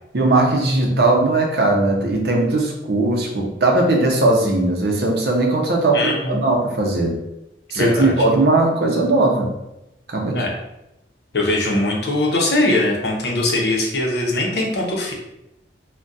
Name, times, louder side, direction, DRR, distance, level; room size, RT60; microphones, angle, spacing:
voice 1, 0.1-7.1 7.7-9.5 10.1-10.4, right 2 dB, 60° right, 1 dB, 0.5 m, -18 dB
voice 2, 5.9-6.4 7.7-8.1 10.3-10.6 11.3-15.1, left 1 dB, 65° left, -1 dB, 0.6 m, -21 dB
2.3 x 2.1 x 3.9 m, 0.90 s
head